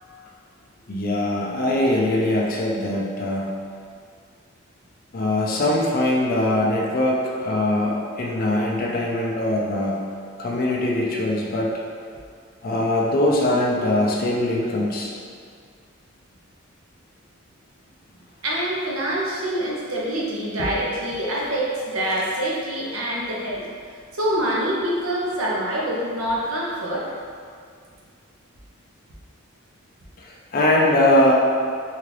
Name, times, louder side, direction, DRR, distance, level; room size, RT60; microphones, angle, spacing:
voice 1, 0.9-3.5 5.1-10.0 10.4-11.7 12.6-15.1 30.2-31.3, left 1 dB, 40° left, -3 dB, 0.4 m, -22 dB
voice 2, 18.4-23.7 24.1-27.1, right 1 dB, 75° right, -4 dB, 0.8 m, -25 dB
3.6 x 2.4 x 3.2 m, 2.1 s
head